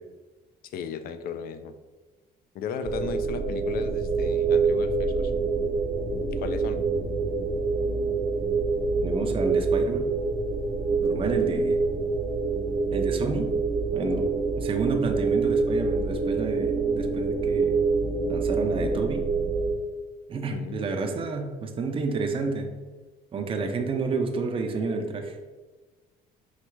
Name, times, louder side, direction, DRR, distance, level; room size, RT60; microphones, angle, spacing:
voice 1, 0.6-1.7 2.5-5.3 6.3-6.8 20.5-20.8, left 6 dB, 60° left, 10 dB, 0.4 m, -35 dB
sound 1, 2.8-19.7, right 4 dB, 60° right, 1.0 m, -26 dB
voice 2, 9.0-10.1 11.0-11.8 12.9-13.5 13.9-14.3 14.6-17.8 18.3-19.2 20.3-22.7 23.3-25.4, right 4 dB, 30° right, 4 dB, 0.5 m, -29 dB
4.8 x 2.0 x 4.4 m, 1.3 s
cardioid pair, 110°, 17 cm